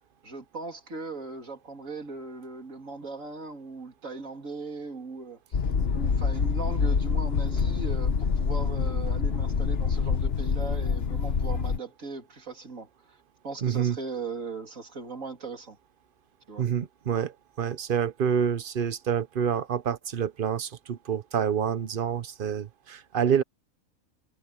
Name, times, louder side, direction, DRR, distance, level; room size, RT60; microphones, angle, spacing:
voice 1, 0.2-5.6 5.9-12.9 13.4-15.8 16.5-16.7, right 3 dB, 65° right, 3.5 m, -38 dB
sound 1, 5.5-11.8, left 5 dB, 45° left, 1.2 m, -26 dB
voice 2, 13.6-14.0 16.6-23.4, right 8 dB, 45° right, 0.8 m, -27 dB
omnidirectional pair, 1.5 m